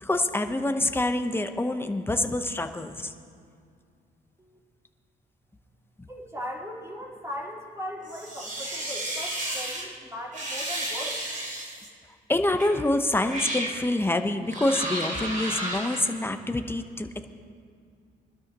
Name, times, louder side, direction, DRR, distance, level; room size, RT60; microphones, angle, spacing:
voice 1, 0.0-3.1 12.3-17.2, left 1 dB, 10° left, 7 dB, 0.9 m, -26 dB
voice 2, 6.1-11.2, equal, 15° right, -4 dB, 4.1 m, -38 dB
sound 1, 8.1-9.8 10.3-11.9 12.6-12.7 13.2-13.8 14.5-16.0, right 1 dB, 40° right, 3.5 m, -32 dB
23.5 x 12.5 x 3.0 m, 2.3 s
cardioid pair, 90°, 20 cm